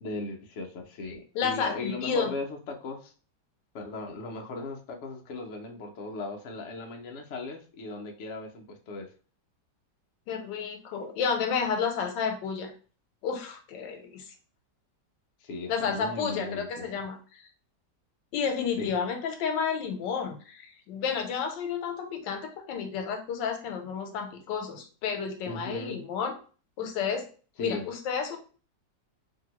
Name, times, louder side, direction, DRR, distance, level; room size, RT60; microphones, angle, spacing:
voice 1, 0.0-3.1 3.7-9.1 15.4-16.9 18.8-18.9 25.5-26.0 27.6-27.9, left 2 dB, 65° left, 1 dB, 0.7 m, -37 dB
voice 2, 1.3-2.3 10.3-12.7 13.2-14.2 15.7-17.2 18.3-26.4 26.8-27.2 27.6-28.4, left 6 dB, 90° left, 5 dB, 1.3 m, -31 dB
2.8 x 2.7 x 2.9 m, 0.39 s
omnidirectional pair, 1.9 m